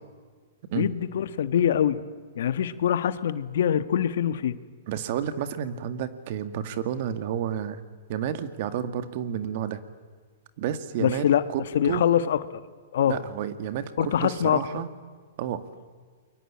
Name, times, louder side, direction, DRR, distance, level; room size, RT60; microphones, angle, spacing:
voice 1, 0.7-2.0 2.4-4.6 11.0-11.4 11.7-12.4 12.9-13.2 14.0-14.6, left 9 dB, 70° left, 13 dB, 1.4 m, -24 dB
voice 2, 4.9-7.8 8.1-9.8 10.6-12.0 13.1-14.9 15.4-15.6, right 9 dB, 50° right, 11 dB, 2.1 m, -31 dB
29.5 x 22.5 x 8.7 m, 1.5 s
hypercardioid pair, 135°, 0 cm